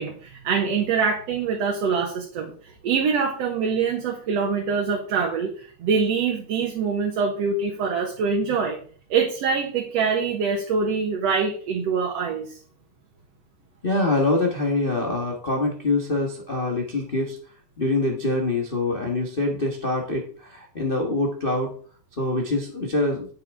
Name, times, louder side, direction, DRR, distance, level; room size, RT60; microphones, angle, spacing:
voice 1, 0.0-2.5 2.8-8.8 9.1-12.5, right 5 dB, 60° right, 0 dB, 2.3 m, -24 dB
voice 2, 13.8-17.4 17.8-21.7 22.2-23.3, left 2 dB, 40° left, 0 dB, 0.7 m, -24 dB
9.8 x 8.9 x 3.6 m, 0.43 s
omnidirectional pair, 3.6 m